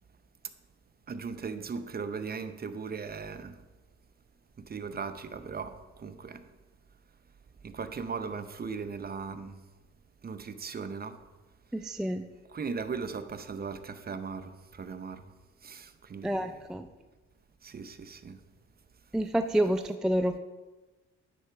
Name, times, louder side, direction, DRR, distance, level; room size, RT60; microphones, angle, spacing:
voice 1, 1.1-3.6 4.6-6.5 7.6-9.6 10.2-11.2 12.5-16.6 17.6-18.4, right 5 dB, 30° right, 0.7 m, -38 dB
voice 2, 11.7-12.2 16.2-16.9 19.1-20.4, right 1 dB, ahead, 0.4 m, -28 dB
10.0 x 4.3 x 5.9 m
cardioid pair, 90°, 30 cm